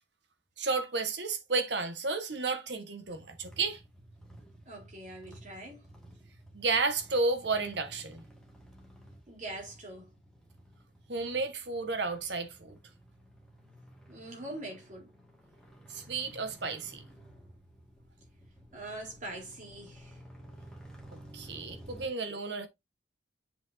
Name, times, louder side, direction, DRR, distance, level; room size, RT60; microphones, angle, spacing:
voice 1, 0.6-3.8 6.5-8.2 11.1-12.8 15.9-17.0 21.3-22.7, right 3 dB, 70° right, 1.6 m, -32 dB
sound 1, 3.0-22.1, right 1 dB, 5° left, 2.3 m, -53 dB
voice 2, 4.7-5.9 9.3-10.1 14.1-15.1 18.7-20.2, right 1 dB, 45° right, 4.0 m, -43 dB
7.7 x 5.9 x 2.8 m
head